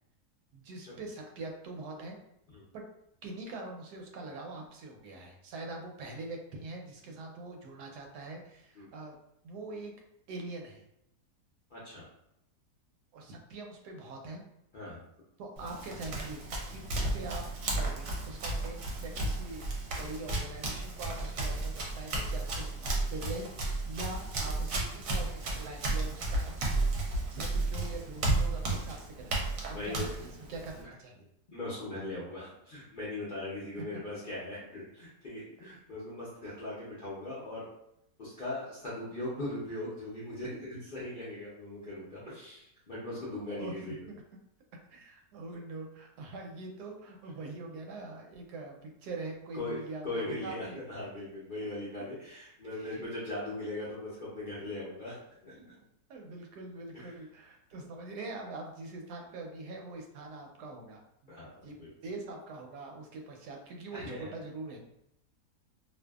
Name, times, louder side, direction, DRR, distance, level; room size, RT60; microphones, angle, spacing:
voice 1, 0.5-2.2 2.7-2.8 3.2-9.2 9.4-9.9 10.3-10.9 13.1-14.4 15.4-16.4 16.7-19.7 20.0-26.5 27.3-31.3 33.8-33.9 43.6-44.0 44.9-50.8 52.7-53.1 56.1-64.8, right 3 dB, 85° right, 1 dB, 1.1 m, -43 dB
voice 2, 11.7-12.0 14.7-15.0 29.7-30.1 30.7-30.9 31.5-37.6 38.2-42.6 42.9-43.9 49.5-49.8 50.0-55.7 56.9-57.1 61.3-61.9 63.9-64.3, left 2 dB, 55° left, -9 dB, 0.5 m, -39 dB
Run, 15.6-30.8, right 2 dB, 65° right, 0.9 m, -33 dB
2.6 x 2.4 x 2.2 m, 0.80 s
omnidirectional pair, 1.7 m